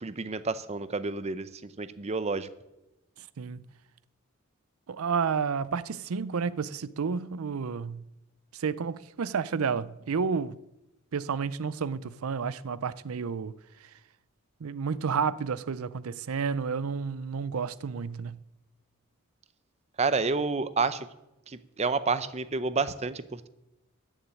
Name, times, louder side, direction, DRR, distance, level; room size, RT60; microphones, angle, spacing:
voice 1, 0.0-2.5 20.0-21.1 21.5-23.5, right 4 dB, 30° right, 0.6 m, -29 dB
voice 2, 4.9-8.0 8.5-10.6 11.1-13.5 14.6-18.4, right 5 dB, 90° right, 0.5 m, -31 dB
14.0 x 7.2 x 9.9 m
head